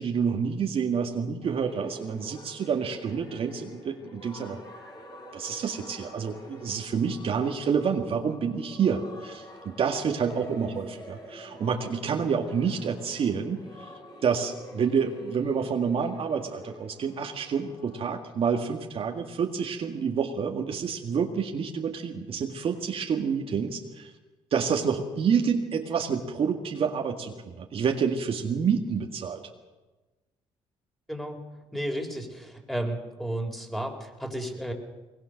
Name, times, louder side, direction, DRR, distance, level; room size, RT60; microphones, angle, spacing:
voice 1, 0.0-4.6 5.3-13.9 14.2-24.1 24.5-29.4, right 6 dB, 55° right, 3 dB, 2.0 m, -28 dB
sound 1, 1.4-18.0, equal, 35° left, 4.4 m, -47 dB
voice 2, 31.1-31.4 31.7-34.7, right 1 dB, ahead, 3 dB, 4.0 m, -33 dB
21.5 x 20.5 x 6.6 m, 1.2 s
cardioid pair, 80°, 11 cm